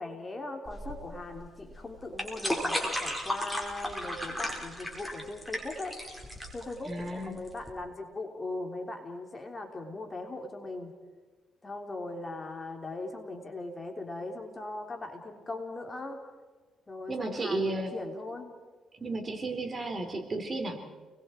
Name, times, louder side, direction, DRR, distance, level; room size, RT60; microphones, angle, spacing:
voice 1, 0.0-6.0 6.5-10.9 11.6-16.2 16.9-18.5, left 2 dB, 25° left, 3 dB, 3.7 m, -39 dB
sound 1, 0.7-7.7, equal, 5° left, 5.1 m, -35 dB
voice 2, 6.8-7.4 17.1-17.9 18.9-21.0, right 2 dB, 35° right, 4 dB, 3.9 m, -33 dB
30.0 x 21.5 x 4.7 m, 1.3 s
cardioid pair, 90°, 0 cm